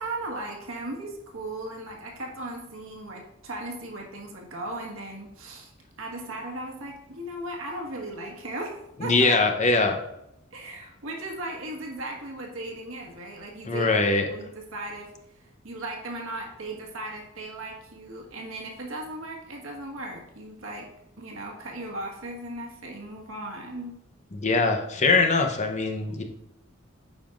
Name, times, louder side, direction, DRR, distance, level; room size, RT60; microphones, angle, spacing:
voice 1, 0.0-5.7 6.0-8.7 9.0-9.4 10.5-13.9 14.3-15.1 15.6-20.9 21.2-24.0, right 1 dB, 80° right, -1 dB, 1.6 m, -37 dB
voice 2, 9.0-10.0 13.7-14.3 24.3-26.2, left 3 dB, 35° left, 5 dB, 0.8 m, -22 dB
8.8 x 5.5 x 2.5 m, 0.82 s
head